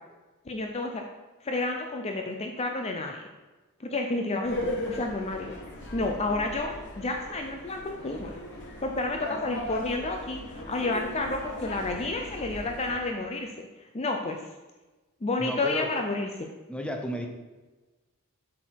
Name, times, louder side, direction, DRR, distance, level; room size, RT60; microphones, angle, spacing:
voice 1, 0.5-1.0 1.4-3.2 3.8-5.6 5.9-8.3 8.8-13.5 13.9-14.4 15.2-16.5, left 2 dB, 30° left, 3 dB, 0.6 m, -30 dB
sound 1, 4.4-13.0, left 1 dB, 55° left, 1.5 m, -38 dB
voice 2, 15.4-16.3 16.7-17.3, equal, 5° left, 2 dB, 0.9 m, -33 dB
7.7 x 6.2 x 4.7 m, 1.2 s
head